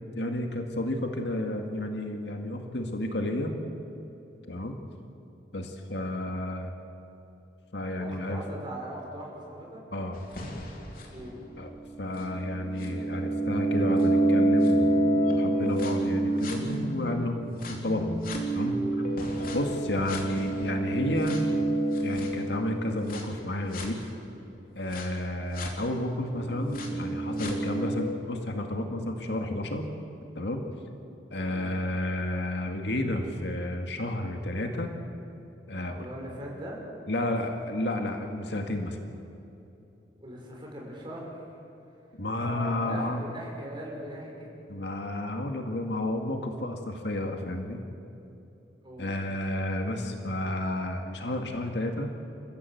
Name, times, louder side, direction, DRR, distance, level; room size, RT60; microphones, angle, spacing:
voice 1, 0.2-3.5 4.5-4.8 5.5-6.7 7.7-8.4 9.9-10.2 11.6-11.7 12.0-18.2 18.5-18.8 19.5-21.4 22.0-24.0 24.8-29.8 30.4-30.6 31.3-34.9 35.7-36.1 37.1-39.0 42.2-43.2 44.7-47.8 49.0-52.1, left 1 dB, 75° left, 4 dB, 2.0 m, -31 dB
voice 2, 8.0-9.8 11.1-11.4 19.3-19.7 31.3-31.7 35.9-36.9 40.2-41.4 42.3-44.5 48.8-49.1, right 1 dB, 25° right, -2 dB, 6.2 m, -40 dB
sound 1, 10.2-17.1 17.6-23.3 23.7-23.9 24.9-25.0 25.6-25.7 26.2-28.0, right 1 dB, 55° left, 3.3 m, -28 dB
29.5 x 15.0 x 8.1 m, 2.9 s
head